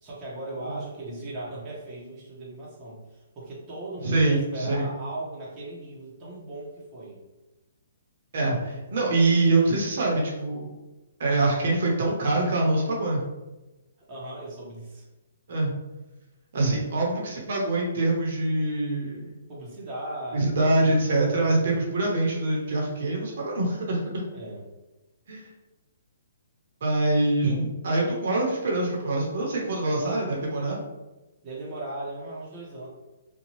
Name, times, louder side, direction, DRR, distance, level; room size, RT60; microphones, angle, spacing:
voice 1, 0.0-7.2 14.1-15.1 19.5-22.0 24.3-24.7 31.4-32.9, right 1 dB, 20° right, -6 dB, 0.8 m, -38 dB
voice 2, 4.0-4.9 8.3-10.7 11.2-13.2 15.5-15.7 16.5-19.3 20.3-24.0 25.3-25.4 26.8-30.8, right 2 dB, 55° right, -2 dB, 0.8 m, -24 dB
2.7 x 2.2 x 3.0 m, 1.1 s
hypercardioid pair, 160°, 0 cm